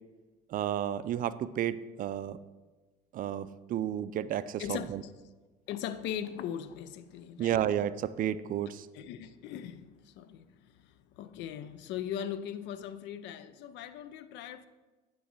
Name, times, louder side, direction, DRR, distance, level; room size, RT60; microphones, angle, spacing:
voice 1, 0.5-2.4 3.1-5.0 7.4-8.9, right 10 dB, 45° right, 0.4 m, -32 dB
voice 2, 4.6-5.1 5.7-7.7 8.9-14.7, left 9 dB, 65° left, 0.5 m, -39 dB
8.3 x 3.1 x 5.5 m
supercardioid pair, 75°, 20 cm